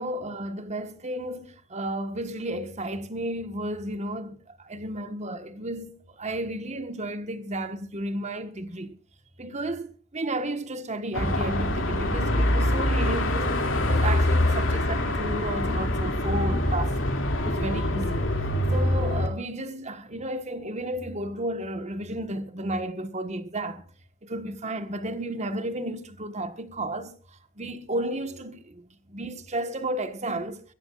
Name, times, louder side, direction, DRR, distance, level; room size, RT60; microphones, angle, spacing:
voice 1, 0.0-8.9 9.4-17.0 17.4-18.2 18.7-23.8 24.2-27.1 27.6-30.6, right 1 dB, 35° right, 1.3 m, -33 dB
Car passing by / Traffic noise roadway noise / Engine, 11.1-19.3, left 1 dB, 70° left, 2.6 m, -24 dB
24.0 x 14.5 x 2.4 m
head